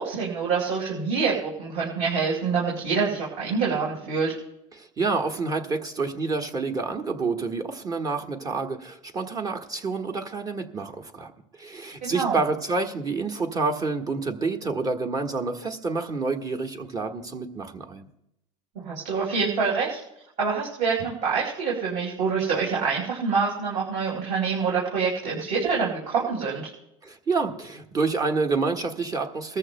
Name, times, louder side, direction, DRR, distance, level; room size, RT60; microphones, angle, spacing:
voice 1, 0.0-4.3 12.0-12.4 18.7-20.0 20.4-26.6, right 5 dB, 50° right, -5 dB, 4.5 m, -26 dB
voice 2, 4.7-11.3 11.6-18.1 27.0-29.6, right 4 dB, 25° right, 3 dB, 1.4 m, -28 dB
21.0 x 14.0 x 2.2 m, 0.82 s
supercardioid pair, 125°, 16 cm